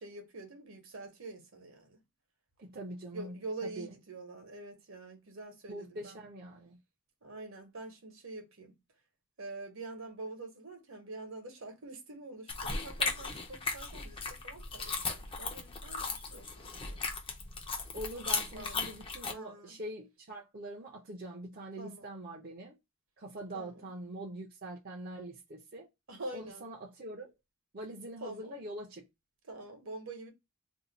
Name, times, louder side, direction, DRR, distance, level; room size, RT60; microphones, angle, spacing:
voice 1, 0.0-2.0 3.1-6.2 7.2-8.8 9.4-17.1 18.5-18.9 19.3-19.8 21.8-22.1 23.5-23.9 26.1-26.7 28.2-28.5 29.5-30.3, right 2 dB, 65° right, 1.1 m, -45 dB
voice 2, 2.6-3.4 3.6-3.9 5.7-6.8 17.9-22.8 23.2-25.9 26.3-27.3 27.7-29.1, right 1 dB, 45° right, 0.6 m, -43 dB
sound 1, 12.5-19.3, left 4 dB, 25° left, 0.5 m, -37 dB
2.7 x 2.2 x 3.9 m
head